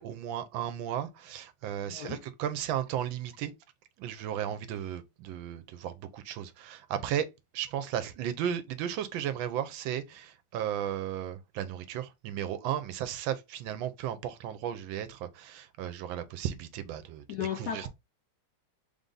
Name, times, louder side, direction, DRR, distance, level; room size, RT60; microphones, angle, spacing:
voice 1, 0.0-3.5 4.0-7.3 7.5-17.9, right 10 dB, 80° right, 1.3 m, -35 dB
voice 2, 1.9-2.2 17.3-17.9, left 9 dB, 75° left, 0.9 m, -35 dB
3.5 x 2.6 x 3.7 m
omnidirectional pair, 2.2 m